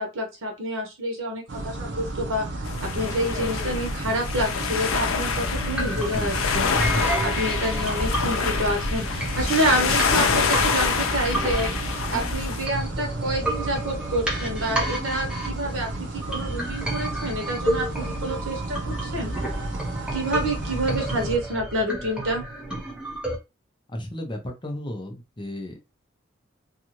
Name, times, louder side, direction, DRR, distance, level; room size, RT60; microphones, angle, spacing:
voice 1, 0.0-2.5 2.9-11.7 12.1-19.3 20.1-22.4, right 1 dB, 80° right, 2 dB, 1.1 m, -28 dB
sound 1, 1.5-21.4, right 2 dB, 60° right, 0.6 m, -33 dB
sound 2, 2.6-12.7, left 5 dB, 85° left, 0.5 m, -26 dB
sound 3, 5.3-23.3, right 1 dB, 5° right, 0.9 m, -32 dB
voice 2, 5.9-6.3 23.9-26.0, left 1 dB, 25° left, 3 dB, 0.6 m, -34 dB
2.6 x 2.4 x 2.9 m, 0.26 s
head